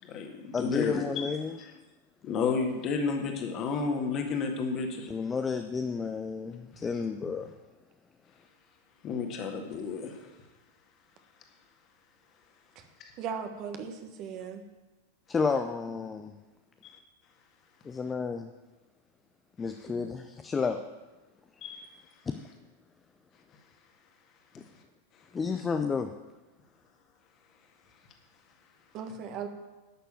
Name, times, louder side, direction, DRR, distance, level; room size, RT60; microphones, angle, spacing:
voice 1, 0.0-1.3 1.6-1.7 2.2-5.1 9.0-10.2 16.8-16.9 21.6-21.8, left 5 dB, 35° left, 3 dB, 1.9 m, -31 dB
voice 2, 0.5-1.6 5.1-7.5 15.3-16.3 17.8-18.5 19.6-20.8 22.3-22.4 25.3-26.1, left 5 dB, 15° left, 7 dB, 0.6 m, -31 dB
voice 3, 13.2-14.6 19.9-20.1 28.9-29.5, right 6 dB, 40° right, 6 dB, 1.3 m, -38 dB
11.5 x 6.8 x 7.6 m, 1.2 s
figure-of-eight pair, 90°, 0 cm